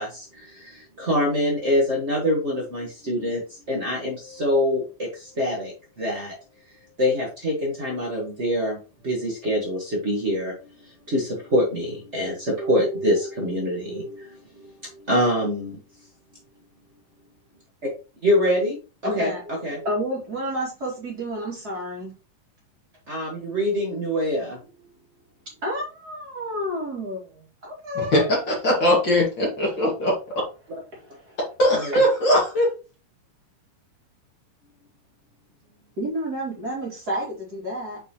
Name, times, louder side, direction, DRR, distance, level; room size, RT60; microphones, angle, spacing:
voice 1, 0.0-6.3 7.0-8.8 9.0-15.8 17.8-17.9 18.2-19.9 23.1-24.6 31.7-32.0, equal, 65° right, -2 dB, 0.6 m, -25 dB
voice 2, 19.0-19.4 19.8-22.1 25.6-28.4 30.9-31.4 36.0-38.0, equal, 30° right, -3 dB, 2.5 m, -30 dB
voice 3, 28.0-30.4 31.6-32.7, equal, 40° left, -3 dB, 2.2 m, -21 dB
7.8 x 4.8 x 3.0 m, 0.33 s
omnidirectional pair, 3.9 m